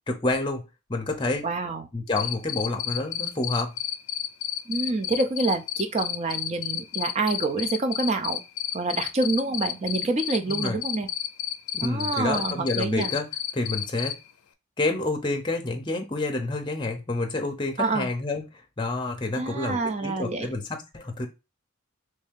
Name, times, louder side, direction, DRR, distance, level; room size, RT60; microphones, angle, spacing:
voice 1, 0.1-1.5 1.9-3.7 10.5-10.8 11.7-13.3 13.5-14.2 14.8-18.4 18.8-21.3, left 2 dB, 20° left, 0.6 m, -28 dB
voice 2, 1.4-1.9 4.7-8.4 8.7-11.1 11.8-13.1 17.8-18.1 19.3-20.5, right 3 dB, 30° right, 0.4 m, -27 dB
Cricket, 2.2-14.1, left 10 dB, 80° left, 0.5 m, -30 dB
3.2 x 2.7 x 3.5 m
head